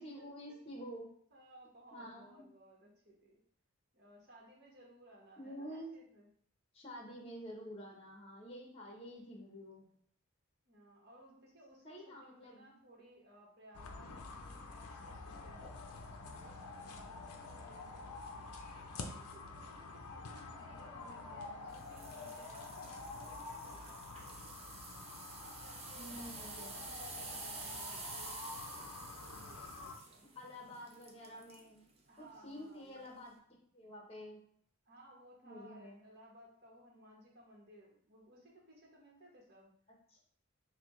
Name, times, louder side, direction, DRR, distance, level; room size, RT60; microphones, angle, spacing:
voice 1, 0.0-1.1 1.9-2.4 5.4-5.9 6.7-9.9 11.8-12.8 20.2-21.7 26.0-26.8 30.3-33.4 33.7-34.4 35.4-36.1 40.1-40.2, equal, 25° left, -1 dB, 0.9 m, -49 dB
voice 2, 1.3-3.4 3.9-6.3 10.6-15.7 16.2-18.6 18.9-24.3 25.4-30.2 32.1-33.0 34.8-39.7, right 1 dB, 45° right, -3 dB, 1.2 m, -60 dB
sound 1, 13.7-30.0, left 3 dB, 85° left, 0.6 m, -48 dB
sound 2, 21.8-31.7 32.2-32.4 33.0-33.1, right 4 dB, 25° right, 0.5 m, -50 dB
5.8 x 2.3 x 3.0 m, 0.64 s
head